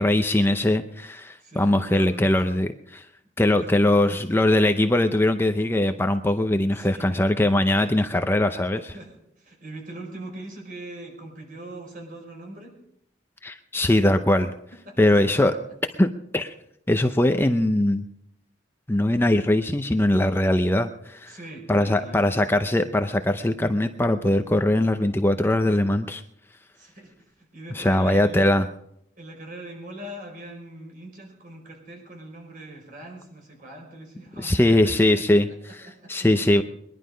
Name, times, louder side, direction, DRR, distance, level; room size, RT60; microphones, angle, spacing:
voice 1, 0.0-3.1 3.4-8.9 13.4-14.5 15.0-15.5 16.0-16.5 16.9-18.0 18.9-21.4 21.7-26.2 27.7-28.7 34.4-35.5 35.7-36.6, left 1 dB, 15° left, 7 dB, 0.6 m, -21 dB
voice 2, 1.4-2.4 3.5-3.9 6.7-7.2 7.7-7.9 8.9-9.1 9.4-12.8 14.7-15.6 21.3-22.3 26.8-27.1 27.5-28.5 29.2-35.4 35.7-36.3 36.5-36.6, right 1 dB, 50° right, 2 dB, 5.1 m, -41 dB
21.5 x 11.5 x 5.1 m, 0.76 s
head